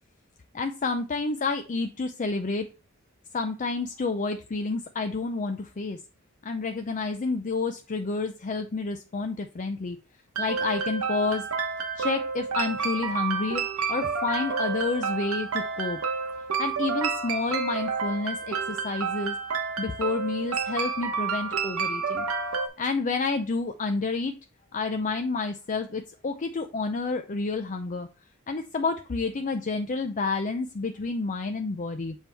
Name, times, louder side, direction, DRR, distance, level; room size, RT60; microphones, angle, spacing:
voice 1, 0.5-2.7 3.3-6.0 6.4-10.0 10.4-11.5 12.0-13.6 13.9-16.0 16.6-19.4 19.8-22.3 22.8-24.3 24.7-28.1 28.5-32.2, left 3 dB, 35° left, 7 dB, 0.5 m, -29 dB
sound 1, 10.4-22.7, right 5 dB, 80° right, 1.0 m, -29 dB
7.2 x 4.5 x 3.3 m, 0.33 s
head